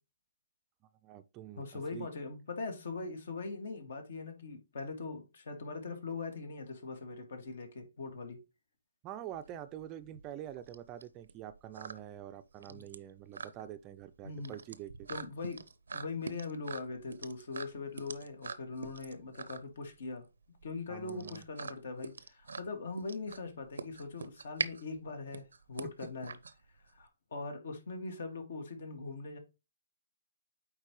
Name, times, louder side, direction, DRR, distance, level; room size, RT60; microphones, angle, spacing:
voice 1, 1.0-2.1 9.0-15.1 20.9-21.4, right 11 dB, 25° right, 0.4 m, -46 dB
voice 2, 1.6-8.4 12.7-12.9 14.2-14.5 15.1-15.6 15.9-20.2 20.6-26.4 26.9-29.4, left 3 dB, 65° left, 2.1 m, -41 dB
sound 1, 9.3-27.1, right 4 dB, 90° right, 0.6 m, -44 dB
8.4 x 4.4 x 3.1 m
hypercardioid pair, 150°, 0 cm